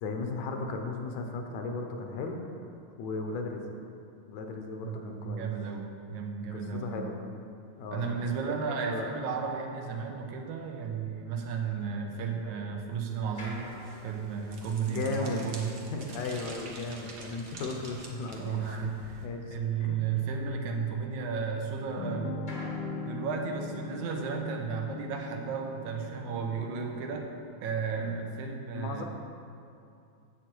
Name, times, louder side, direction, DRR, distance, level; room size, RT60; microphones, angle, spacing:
voice 1, 0.0-2.4 3.0-3.6 4.3-5.5 6.5-7.2 7.8-8.1 8.8-9.1 14.9-15.5 15.9-18.9 19.2-20.0 28.0-28.4 28.7-29.0, left 3 dB, 75° left, 3 dB, 2.0 m, -36 dB
voice 2, 4.8-7.1 7.9-13.7 14.0-15.8 18.4-19.2 19.5-22.5 23.1-27.3 27.6-29.0, right 6 dB, 85° right, 2 dB, 2.3 m, -34 dB
sound 1, 12.7-22.0 22.4-28.0, left 1 dB, 30° left, 0.8 m, -53 dB
sound 2, 13.3-19.3, right 3 dB, 65° right, 1.0 m, -47 dB
sound 3, 22.0-27.4, left 4 dB, 90° left, 1.2 m, -40 dB
9.6 x 7.8 x 4.5 m, 2.5 s
omnidirectional pair, 3.4 m